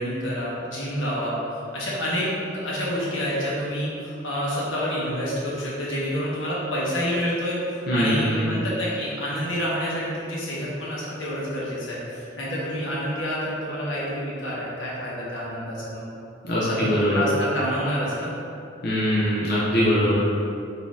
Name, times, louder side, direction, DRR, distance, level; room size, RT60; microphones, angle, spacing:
voice 1, 0.0-16.1 16.6-18.3, equal, 85° left, -6 dB, 1.1 m, -28 dB
voice 2, 7.9-8.5 16.4-17.2 18.8-20.2, equal, 55° left, -8 dB, 0.6 m, -22 dB
4.1 x 2.7 x 3.6 m, 2.6 s
head